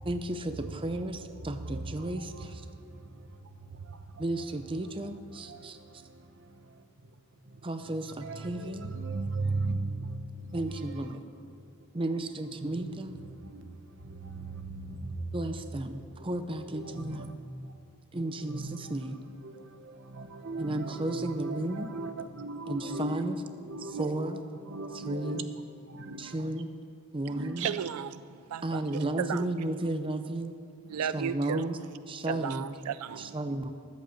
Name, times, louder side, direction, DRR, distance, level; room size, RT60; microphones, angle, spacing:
voice 1, 0.0-2.6 4.2-5.8 7.6-8.9 10.5-11.3 11.9-13.2 15.3-17.3 18.1-19.3 20.6-21.9 22.7-23.4 23.8-24.4 24.9-25.5 26.2-26.7 27.1-27.7 28.6-30.6 31.1-31.8 32.1-32.7 33.2-33.7, right 1 dB, 25° right, 0.6 m, -33 dB
voice 2, 1.7-2.1 2.7-3.4 3.7-4.0 5.5-6.7 7.5-7.6 8.2-10.6 12.6-13.0 13.4-15.3 16.7-17.4 18.1-18.9 19.4-23.2 23.5-24.3 24.7-25.4 25.9-26.3 27.3-27.7, right 3 dB, 55° right, 1.0 m, -38 dB
voice 3, 27.3-28.8 29.2-29.5 30.9-31.6 32.3-33.4, right 8 dB, 90° right, 0.4 m, -35 dB
14.0 x 10.5 x 7.1 m
head